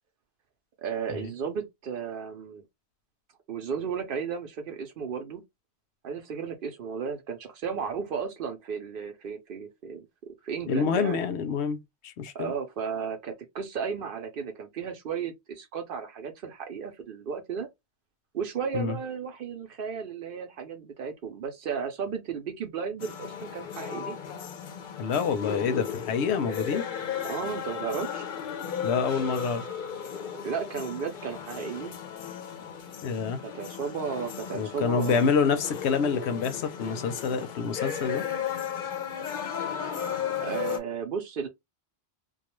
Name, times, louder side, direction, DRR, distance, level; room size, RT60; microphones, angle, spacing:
voice 1, 0.8-2.6 3.5-5.4 6.0-10.1 10.4-11.2 12.3-17.7 18.3-24.2 27.2-28.2 30.4-32.0 33.4-35.6 35.9-36.3 40.4-41.5, right 6 dB, 60° right, 0.8 m, -34 dB
voice 2, 10.7-12.5 18.7-19.0 25.0-26.8 28.8-29.6 33.0-33.4 34.5-38.3, left 6 dB, 90° left, 0.9 m, -27 dB
sound 1, 23.0-40.8, left 8 dB, 55° left, 0.7 m, -35 dB
2.3 x 2.2 x 3.0 m
omnidirectional pair, 1.1 m